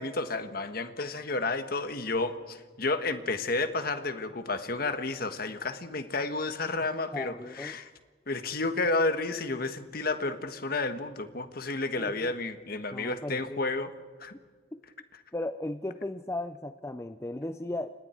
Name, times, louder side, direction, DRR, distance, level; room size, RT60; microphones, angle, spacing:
voice 1, 0.0-7.9 8.3-13.9 14.2-14.3, left 3 dB, 55° left, 9 dB, 1.6 m, -31 dB
voice 2, 7.1-7.8 12.0-12.3 12.9-13.6 15.3-17.9, left 1 dB, 15° left, 9 dB, 0.6 m, -36 dB
30.0 x 26.5 x 4.6 m, 1.5 s
head